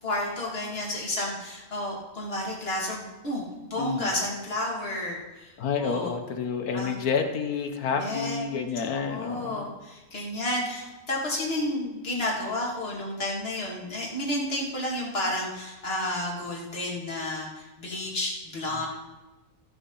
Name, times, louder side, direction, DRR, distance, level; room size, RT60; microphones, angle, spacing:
voice 1, 0.0-5.5 5.8-6.1 6.7-7.0 7.9-8.5 8.9-18.9, left 1 dB, 40° left, -3 dB, 2.6 m, -31 dB
voice 2, 3.8-4.1 5.6-9.7, left 6 dB, 90° left, 5 dB, 1.5 m, -29 dB
14.5 x 6.9 x 5.5 m, 1.1 s
omnidirectional pair, 1.5 m